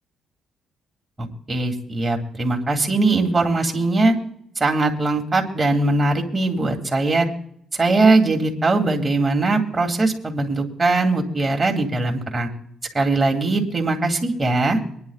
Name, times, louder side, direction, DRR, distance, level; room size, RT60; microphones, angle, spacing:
voice 1, 1.2-4.2 4.6-7.3 7.7-12.5 12.9-14.8, right 2 dB, 25° right, 2 dB, 2.3 m, -20 dB
24.5 x 10.5 x 2.4 m, 0.71 s
cardioid pair, 90°, 0 cm